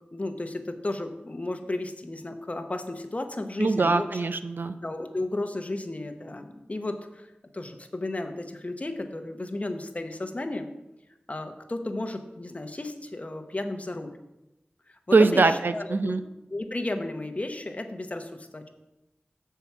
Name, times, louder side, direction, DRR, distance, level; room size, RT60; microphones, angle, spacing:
voice 1, 0.1-4.2 4.8-7.3 7.5-10.7 11.3-14.2 14.9-18.7, left 2 dB, 40° left, 6 dB, 0.9 m, -34 dB
voice 2, 3.6-4.8 15.1-16.2, right 3 dB, 75° right, 10 dB, 0.5 m, -22 dB
6.9 x 4.7 x 7.0 m, 0.96 s
wide cardioid pair, 55°, 3 cm